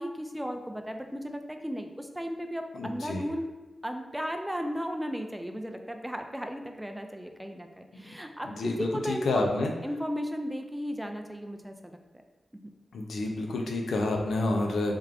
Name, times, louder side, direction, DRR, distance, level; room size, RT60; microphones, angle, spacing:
voice 1, 0.0-3.5 3.8-9.5 9.8-12.0 12.5-12.6, equal, 10° right, 5 dB, 0.4 m, -35 dB
voice 2, 2.7-3.3 8.4-9.7 12.9-15.0, left 2 dB, 85° left, 1 dB, 0.4 m, -29 dB
3.5 x 3.2 x 2.4 m, 1.2 s
cardioid pair, 45°, 0 cm